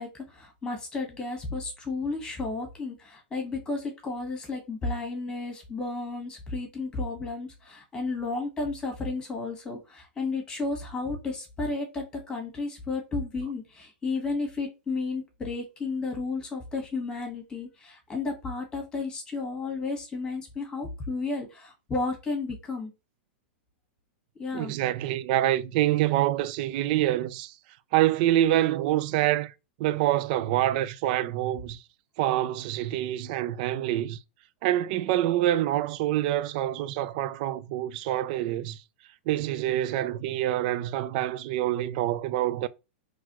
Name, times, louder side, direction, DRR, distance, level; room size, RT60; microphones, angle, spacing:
voice 1, 0.0-22.9 24.4-24.7, left 3 dB, 15° left, 1.5 m, -33 dB
voice 2, 24.5-27.5 27.9-29.5 29.8-31.8 32.2-34.2 34.6-38.8 39.3-42.7, right 13 dB, 45° right, 0.4 m, -26 dB
4.1 x 3.1 x 2.9 m
supercardioid pair, 150°, 6 cm